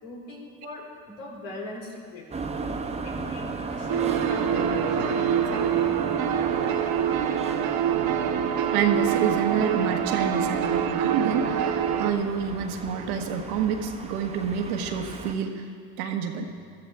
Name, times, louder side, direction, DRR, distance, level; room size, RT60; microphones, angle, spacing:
voice 1, 0.0-2.5 3.0-5.9, left 2 dB, 80° left, -2 dB, 3.4 m, -40 dB
sound 1, 2.3-15.3, right 3 dB, 15° right, 1.1 m, -36 dB
sound 2, 3.9-12.1, right 8 dB, 55° right, 1.2 m, -25 dB
voice 2, 8.7-15.6 16.0-16.5, right 7 dB, 85° right, 4 dB, 1.4 m, -28 dB
16.5 x 13.0 x 3.6 m, 2.1 s
supercardioid pair, 90°, 43 cm